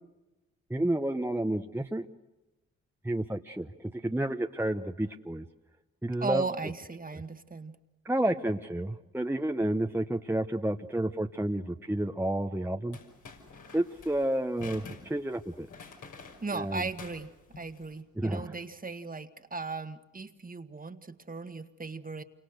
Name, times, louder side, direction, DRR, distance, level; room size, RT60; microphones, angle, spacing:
voice 1, 0.7-2.1 3.0-5.5 6.0-6.4 8.0-13.0 13.7-15.7 16.5-16.9 18.2-18.5, right 1 dB, 5° right, 4 dB, 1.1 m, -30 dB
voice 2, 6.2-7.8 16.4-17.3 17.6-22.2, right 4 dB, 25° right, 9 dB, 1.7 m, -37 dB
sound 1, 12.9-18.0, left 4 dB, 75° left, 5.9 m, -49 dB
28.5 x 25.0 x 6.6 m, 1.1 s
supercardioid pair, 50°, 31 cm